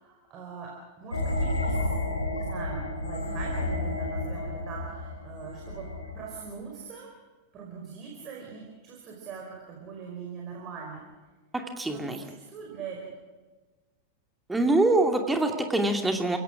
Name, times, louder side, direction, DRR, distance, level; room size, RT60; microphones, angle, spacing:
voice 1, 0.0-1.8 2.3-5.9 6.1-7.1 7.5-11.0 11.7-13.2, right 6 dB, 35° right, -1 dB, 4.9 m, -42 dB
sound 1, 1.1-6.6, left 1 dB, 80° left, 2.2 m, -31 dB
voice 2, 11.5-12.2 14.5-16.4, right 2 dB, 10° right, 4 dB, 2.5 m, -24 dB
29.5 x 17.0 x 6.3 m, 1.3 s
figure-of-eight pair, 90°, 0 cm